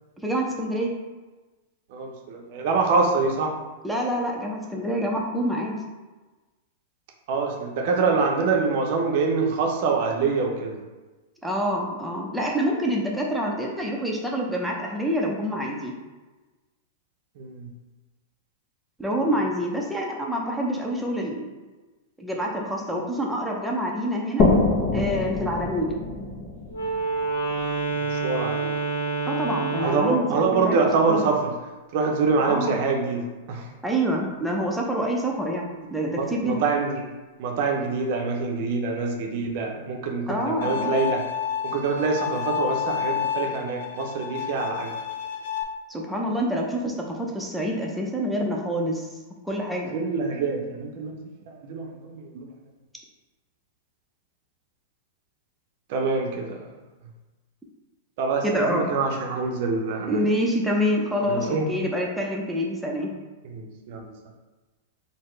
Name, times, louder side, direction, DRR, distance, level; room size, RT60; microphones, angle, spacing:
voice 1, 0.2-0.9 3.8-5.8 11.4-15.9 19.0-21.5 22.2-24.5 24.9-25.9 29.3-30.8 31.1-31.2 32.5-32.7 33.8-36.6 40.3-41.0 45.9-49.1 49.4-49.9 58.4-58.9 60.1-63.1, equal, 5° right, -2 dB, 0.6 m, -26 dB
voice 2, 1.9-3.6 7.3-10.8 17.4-17.7 28.1-28.7 29.8-31.5 31.9-33.7 36.2-37.1 37.4-41.2 41.6-44.9 49.9-51.1 51.5-52.5 55.9-56.7 58.2-60.2 61.2-61.7 63.4-64.0, right 4 dB, 55° right, 1 dB, 0.6 m, -25 dB
sound 1, 24.4-27.9, left 3 dB, 40° left, 0.7 m, -25 dB
Wind instrument woodwind instrument, 26.7-30.3, right 4 dB, 90° left, 0.7 m, -27 dB
Bowed string instrument, 40.6-45.6, left 8 dB, 65° left, 0.3 m, -30 dB
3.7 x 2.1 x 3.2 m, 1.2 s
hypercardioid pair, 105°, 0 cm